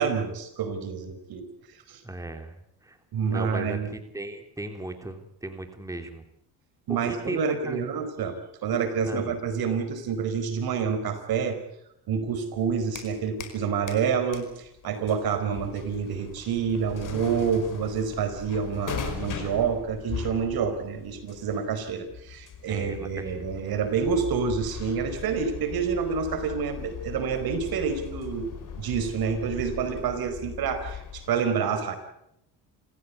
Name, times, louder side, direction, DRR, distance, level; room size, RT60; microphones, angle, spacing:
voice 1, 0.0-1.5 1.9-2.0 3.1-3.9 6.9-8.4 8.6-11.6 12.1-28.5 28.8-32.0, right 6 dB, 65° right, 9 dB, 4.8 m, -28 dB
voice 2, 2.0-2.6 2.8-3.0 3.3-6.2 6.9-7.8 9.1-9.3 22.7-23.5, right 1 dB, 10° right, 6 dB, 3.2 m, -37 dB
sound 1, 12.5-13.6 13.9-31.3, left 7 dB, 50° left, 5.2 m, -39 dB
28.0 x 15.5 x 8.5 m, 0.79 s
cardioid pair, 95°, 39 cm